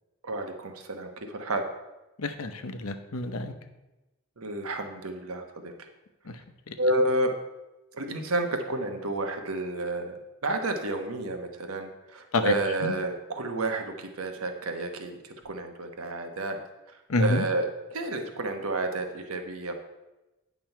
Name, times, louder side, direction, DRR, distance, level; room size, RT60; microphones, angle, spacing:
voice 1, 0.2-1.6 4.4-5.7 6.8-7.3 7.9-16.6 17.2-19.7, right 2 dB, 85° right, 5 dB, 1.1 m, -30 dB
voice 2, 2.2-3.5 6.3-6.4 6.7-6.8 12.3-12.5 12.8-12.9 17.1-17.4, left 2 dB, 85° left, 8 dB, 0.8 m, -28 dB
9.3 x 6.1 x 4.5 m, 1.0 s
head